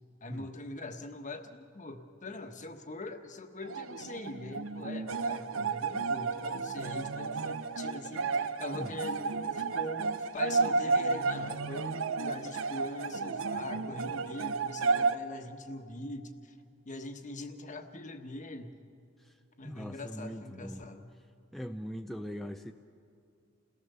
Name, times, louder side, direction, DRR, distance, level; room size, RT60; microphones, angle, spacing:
voice 1, 0.2-16.6 16.8-18.8 19.6-21.1, left 2 dB, 40° left, 6 dB, 1.3 m, -42 dB
sound 1, 3.6-15.2, right 4 dB, 75° right, 0.7 m, -32 dB
voice 2, 19.6-20.9 21.5-22.7, equal, ahead, 5 dB, 0.5 m, -40 dB
29.0 x 17.5 x 6.8 m, 2.5 s
head